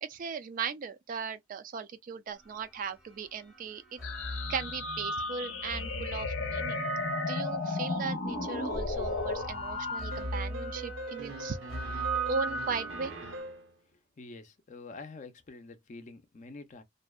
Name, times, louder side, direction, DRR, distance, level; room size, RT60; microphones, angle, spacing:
voice 1, 0.0-4.0 4.5-6.8 7.2-11.6 11.8-13.1, right 5 dB, 45° right, 0.3 m, -37 dB
sound 1, 2.7-2.8 3.7-8.0 8.7-13.4, right 2 dB, ahead, 0.6 m, -38 dB
sound 2, 4.0-10.0, left 3 dB, 85° left, 0.6 m, -35 dB
sound 3, 10.1-13.7, right 3 dB, 80° right, 0.7 m, -42 dB
voice 2, 14.2-16.8, left 3 dB, 40° left, 0.5 m, -47 dB
2.6 x 2.1 x 2.2 m
head